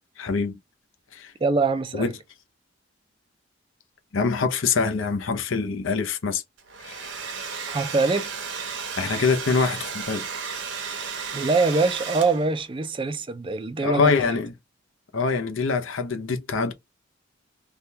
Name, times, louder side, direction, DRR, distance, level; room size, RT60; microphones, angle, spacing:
voice 1, 0.2-0.6 1.1-1.3 1.9-2.1 4.1-6.4 6.8-7.0 9.0-10.3 13.8-14.5 15.1-16.7, left 4 dB, 75° left, 0.7 m, -24 dB
voice 2, 1.4-2.1 7.7-8.3 11.3-14.1, right 3 dB, 25° right, 0.4 m, -23 dB
Domestic sounds home sounds, 6.6-12.6, right 6 dB, 60° right, 0.8 m, -34 dB
3.4 x 2.3 x 2.8 m
head